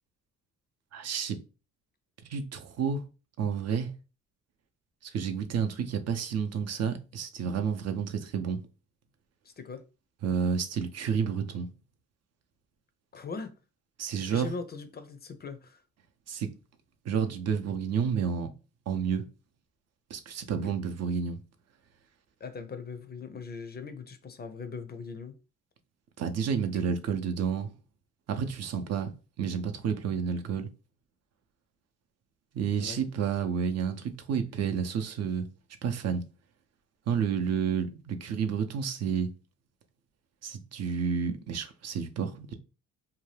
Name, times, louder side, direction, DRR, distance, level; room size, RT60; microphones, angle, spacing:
voice 1, 0.9-1.4 2.2-3.1 3.4-3.9 5.0-8.6 10.2-11.7 14.0-14.5 16.3-16.5 17.0-18.5 18.9-19.3 20.1-21.4 26.2-27.7 28.3-29.1 29.4-30.7 32.5-35.5 35.8-36.2 37.1-39.3 40.4-42.5, right 7 dB, 55° right, 0.6 m, -30 dB
voice 2, 9.4-9.8 13.1-13.5 14.2-15.8 20.6-20.7 22.4-25.4 26.8-26.9 32.8-33.0, left 5 dB, 35° left, 0.4 m, -40 dB
2.7 x 2.2 x 3.2 m
cardioid pair, 90°, 30 cm